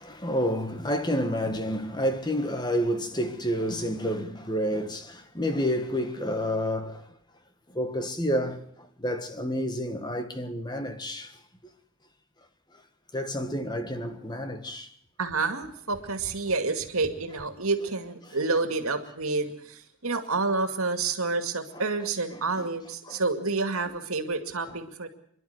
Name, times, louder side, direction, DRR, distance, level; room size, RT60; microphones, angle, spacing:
voice 1, 0.0-7.1 7.7-11.4 13.1-14.9 21.7-21.8 22.6-22.7 23.1-23.2, equal, 20° left, 1.5 m, -29 dB
voice 2, 15.2-25.1, right 3 dB, 80° right, 2.4 m, -29 dB
27.0 x 11.5 x 9.4 m
head